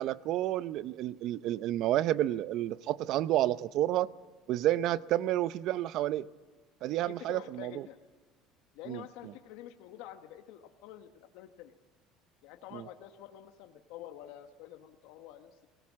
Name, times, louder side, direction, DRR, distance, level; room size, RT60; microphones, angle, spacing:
voice 1, 0.0-4.1 4.5-6.2 6.8-7.8 8.9-9.0 12.7-12.8, right 13 dB, 55° right, 0.6 m, -30 dB
voice 2, 7.0-8.0 8.7-11.7 12.4-15.7, left 11 dB, 80° left, 1.2 m, -48 dB
23.0 x 18.0 x 7.4 m
cardioid pair, 135°, 0 cm